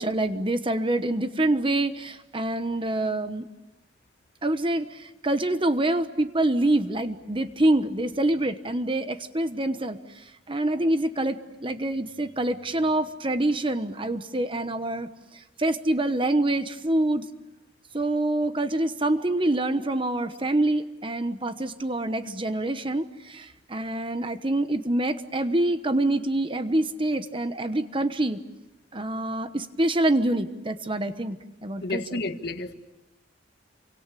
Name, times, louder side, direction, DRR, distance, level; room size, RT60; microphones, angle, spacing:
voice 1, 0.0-3.4 4.4-10.0 10.5-15.1 15.6-17.2 17.9-28.4 28.9-32.2, right 1 dB, 25° right, 10 dB, 1.1 m, -26 dB
voice 2, 31.8-32.7, left 2 dB, 55° left, 8 dB, 1.6 m, -31 dB
29.0 x 24.5 x 8.4 m, 0.98 s
head